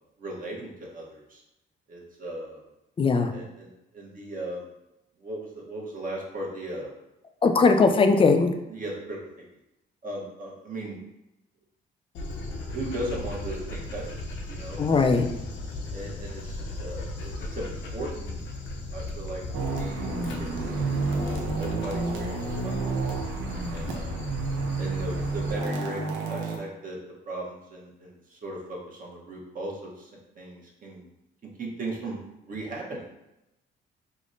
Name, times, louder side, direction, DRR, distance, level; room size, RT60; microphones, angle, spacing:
voice 1, 0.2-1.4 1.9-2.6 3.3-4.7 5.2-6.9 7.7-8.0 8.7-9.5 10.0-11.0 12.3-14.1 14.5-15.1 15.9-18.4 18.9-20.1 20.4-23.0 23.7-24.3 24.8-27.0 27.3-30.1 30.3-31.1 31.6-33.0, right 1 dB, 45° right, -3 dB, 0.9 m, -37 dB
voice 2, 3.0-3.3 7.4-8.5 14.8-15.3, left 4 dB, 25° left, 6 dB, 0.4 m, -19 dB
Dog, 12.1-25.5, left 2 dB, 70° left, 0.6 m, -36 dB
sound 1, 19.5-26.6, right 3 dB, 75° right, 0.7 m, -30 dB
5.0 x 2.0 x 2.5 m, 0.92 s
cardioid pair, 90°, 20 cm